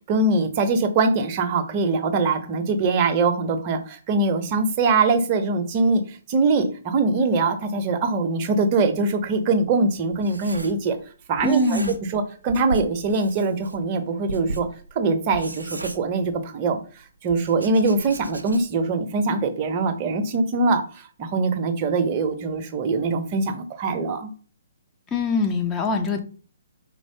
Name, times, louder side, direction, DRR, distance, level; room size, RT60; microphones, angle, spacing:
voice 1, 0.1-6.0 6.3-11.0 11.3-11.8 12.1-14.7 15.0-16.8 17.2-20.8 21.2-24.3, right 3 dB, 30° right, 6 dB, 0.6 m, -22 dB
Writing, 9.2-11.1 11.4-12.2 12.5-16.6 17.3-18.9, right 3 dB, 80° right, 0.5 m, -37 dB
voice 2, 11.4-11.9 25.1-26.2, left 3 dB, 15° left, 4 dB, 0.5 m, -23 dB
4.3 x 3.0 x 2.7 m, 0.39 s
figure-of-eight pair, 130°, 0 cm